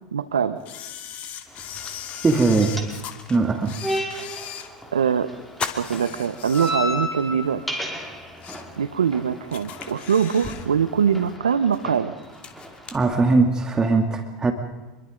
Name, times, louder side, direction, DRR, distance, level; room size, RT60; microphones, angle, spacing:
voice 1, 0.1-0.6 4.9-5.3 5.7-7.6 8.8-12.1, right 7 dB, 90° right, 12 dB, 0.9 m, -23 dB
Camera, 0.7-3.2 3.6-5.3 5.7-7.1 7.5-7.6 8.1-8.8 9.1-9.2 9.5-10.7 10.9-11.0, left 10 dB, 50° left, 2.3 m, -39 dB
sound 1, 1.3-4.7 5.0-5.1 5.5-7.0 7.4-7.5 8.9-9.0 9.6-13.8, left 5 dB, 30° left, 2.8 m, -39 dB
sound 2, 1.5-13.0, equal, 5° left, 5.0 m, -35 dB
voice 2, 2.2-2.8 3.3-3.8 12.9-14.5, right 3 dB, 20° right, 5 dB, 2.4 m, -20 dB
27.0 x 22.5 x 5.2 m, 1.1 s
hypercardioid pair, 80°, 3 cm